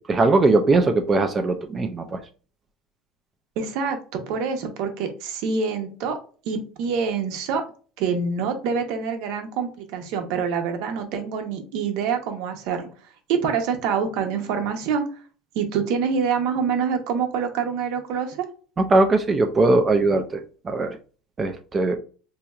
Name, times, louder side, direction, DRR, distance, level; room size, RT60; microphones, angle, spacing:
voice 1, 0.1-2.2 18.8-20.4 20.7-21.0 21.4-22.0, right 2 dB, 20° right, 6 dB, 0.3 m, -20 dB
voice 2, 3.6-6.2 6.5-7.6 8.0-12.8 13.3-15.0 15.5-18.4 20.1-20.2, right 6 dB, 65° right, 6 dB, 0.8 m, -26 dB
4.1 x 2.8 x 2.3 m, 0.38 s
cardioid pair, 155°, 0 cm